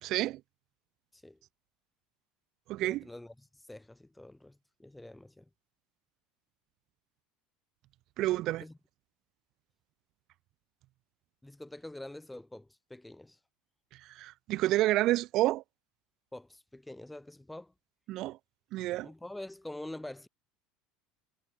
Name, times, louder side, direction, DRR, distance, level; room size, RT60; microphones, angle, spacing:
voice 1, 0.0-0.4 2.7-3.0 8.2-8.6 13.9-15.6 18.1-18.4 18.7-19.1, right 16 dB, 55° right, 2.2 m, -29 dB
voice 2, 2.8-5.5 8.5-8.8 11.4-13.4 16.3-17.7 19.0-20.3, left 1 dB, 5° left, 5.0 m, -46 dB
supercardioid pair, 115°, 0 cm